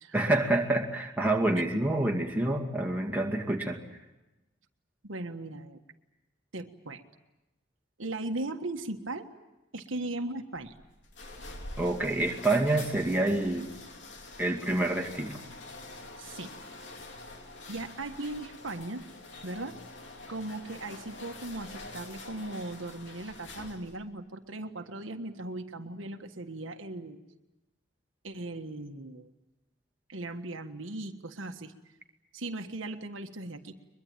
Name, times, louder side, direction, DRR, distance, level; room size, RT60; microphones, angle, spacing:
voice 1, 0.1-3.8 11.8-13.7 14.4-15.4, right 2 dB, 10° right, 1 dB, 2.2 m, -27 dB
voice 2, 5.0-5.8 6.5-7.0 8.0-9.3 9.7-10.7 16.2-16.5 17.7-19.0 19.4-19.7 20.3-27.2 28.2-29.3 30.1-31.7 32.3-33.8, right 2 dB, 85° right, 5 dB, 1.5 m, -38 dB
sound 1, 10.6-24.1, left 2 dB, 65° left, 3.0 m, -46 dB
22.5 x 22.5 x 9.0 m, 1.0 s
head